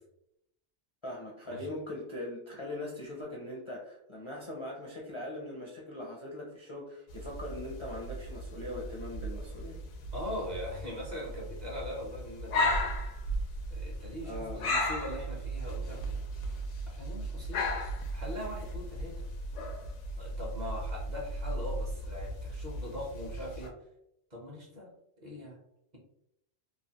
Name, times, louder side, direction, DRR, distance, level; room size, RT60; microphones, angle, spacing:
voice 1, 1.0-9.8 14.2-14.7, left 1 dB, 35° left, -3 dB, 0.5 m, -41 dB
sound 1, 7.1-23.7, equal, 85° left, 1.0 m, -36 dB
voice 2, 10.1-12.9 13.7-16.2 16.9-17.8 18.1-19.3 20.2-23.8 24.3-24.9 25.2-25.6, left 1 dB, 40° right, -2 dB, 0.9 m, -41 dB
3.1 x 2.5 x 2.8 m, 0.79 s
omnidirectional pair, 1.2 m